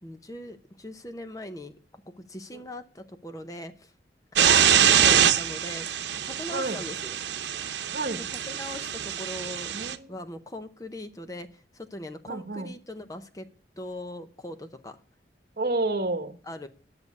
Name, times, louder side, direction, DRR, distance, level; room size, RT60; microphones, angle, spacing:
voice 1, 0.0-3.9 4.3-5.9 6.2-7.2 8.3-9.7 10.1-13.5 13.8-15.0 16.4-16.7, left 1 dB, 20° left, 0.8 m, -40 dB
voice 2, 4.3-4.8 6.5-6.8 7.9-8.2 9.7-10.1 12.3-12.7 15.6-16.4, right 2 dB, 55° right, 1.1 m, -30 dB
sound 1, 4.4-10.0, right 9 dB, 85° right, 0.8 m, -24 dB
10.5 x 6.8 x 8.4 m
head